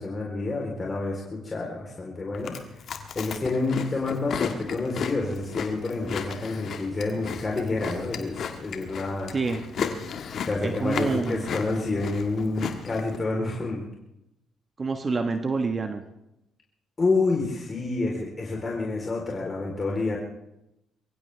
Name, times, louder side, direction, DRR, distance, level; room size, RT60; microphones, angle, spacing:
voice 1, 0.0-2.6 3.2-9.4 10.4-13.9 17.0-20.2, left 3 dB, 35° left, -1 dB, 3.6 m, -28 dB
Chewing mastication, 2.3-13.2, left 6 dB, 60° left, 1.8 m, -35 dB
voice 2, 9.3-9.6 10.6-11.5 14.8-16.0, right 4 dB, 35° right, 6 dB, 1.3 m, -27 dB
23.0 x 15.5 x 3.4 m, 0.87 s
supercardioid pair, 60°, 0 cm